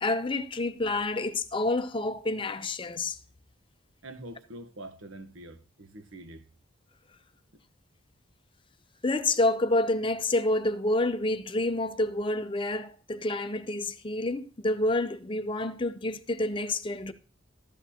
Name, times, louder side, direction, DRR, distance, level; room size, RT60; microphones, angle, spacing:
voice 1, 0.0-3.2 9.0-17.1, left 2 dB, 25° left, 0.6 m, -28 dB
voice 2, 4.0-6.4, right 1 dB, 85° right, 1.1 m, -45 dB
13.0 x 8.4 x 2.8 m
head